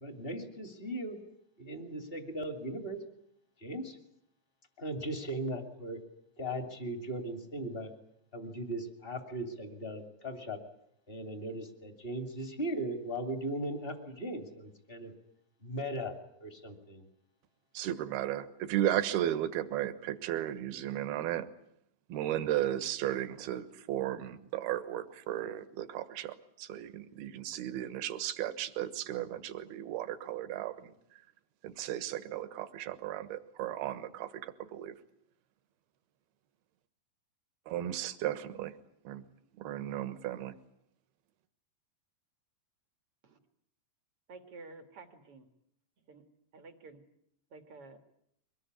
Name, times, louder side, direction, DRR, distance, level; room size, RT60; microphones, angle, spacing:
voice 1, 0.0-1.2 1.6-3.0 3.6-4.0 4.8-6.0 6.4-7.9 8.3-10.6 11.1-15.1 15.6-16.1 16.4-17.1, right 1 dB, 20° left, 7 dB, 1.7 m, -38 dB
voice 2, 17.7-21.4 22.1-30.9 31.6-35.0 37.7-38.7 39.0-39.2 39.6-40.6, right 12 dB, 65° right, 12 dB, 2.9 m, -35 dB
voice 3, 44.3-45.4 46.1-46.2 46.5-47.0 47.5-48.0, right 3 dB, 50° right, 7 dB, 1.8 m, -50 dB
24.0 x 20.5 x 9.7 m, 0.75 s
omnidirectional pair, 5.3 m